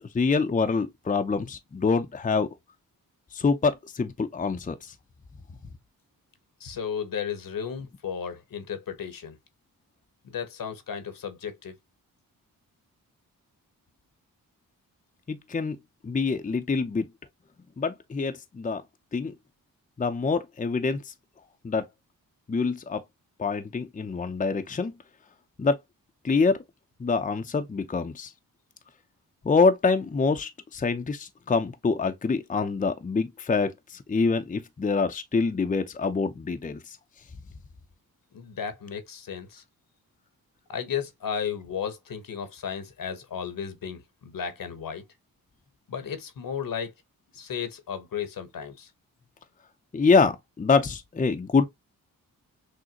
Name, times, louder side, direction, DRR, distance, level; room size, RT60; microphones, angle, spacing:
voice 1, 0.1-2.5 3.3-4.9 15.3-15.8 16.0-17.1 17.8-18.8 19.1-19.3 20.0-21.1 21.6-21.9 22.5-23.0 23.4-24.9 25.6-25.8 26.2-26.6 27.0-28.3 29.4-36.8 49.9-51.7, left 4 dB, 20° left, 0.6 m, -25 dB
voice 2, 6.6-9.4 10.2-11.7 38.3-39.6 40.7-45.0 45.9-46.9 47.3-48.9, left 7 dB, 65° left, 1.0 m, -34 dB
6.3 x 2.1 x 2.8 m
cardioid pair, 60°, 36 cm